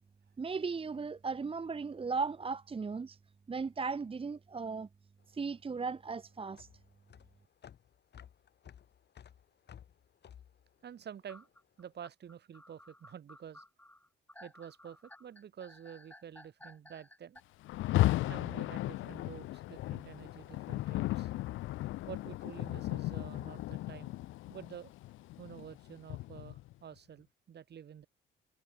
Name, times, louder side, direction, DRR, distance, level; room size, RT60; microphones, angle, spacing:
voice 1, 0.4-3.2 3.5-4.9 5.3-6.7, right 4 dB, 25° right, 1.1 m, -36 dB
sound 1, 5.2-11.7, left 9 dB, 60° left, 3.4 m, -56 dB
voice 2, 10.8-11.5 11.8-13.6 14.4-17.4 18.3-21.3 22.1-24.1 24.5-24.9 25.4-28.1, right 8 dB, 55° right, 4.8 m, -49 dB
sound 2, 11.3-17.4, left 1 dB, 10° left, 5.3 m, -56 dB
Rain, 17.6-26.7, left 16 dB, 80° left, 0.5 m, -35 dB
cardioid pair, 90°, 20 cm